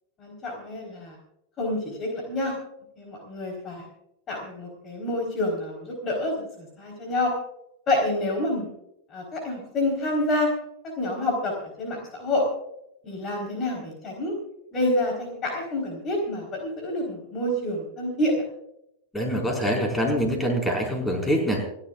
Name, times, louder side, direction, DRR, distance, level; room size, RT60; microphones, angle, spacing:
voice 1, 0.2-1.2 1.6-2.5 3.0-3.8 4.3-7.3 7.9-8.7 9.1-10.5 11.0-11.5 11.8-12.4 13.0-14.3 14.7-18.4, left 1 dB, 30° left, 1 dB, 4.1 m, -28 dB
voice 2, 19.1-21.6, equal, 10° left, 1 dB, 4.9 m, -24 dB
29.0 x 11.5 x 2.4 m, 0.77 s
figure-of-eight pair, 90°, 0 cm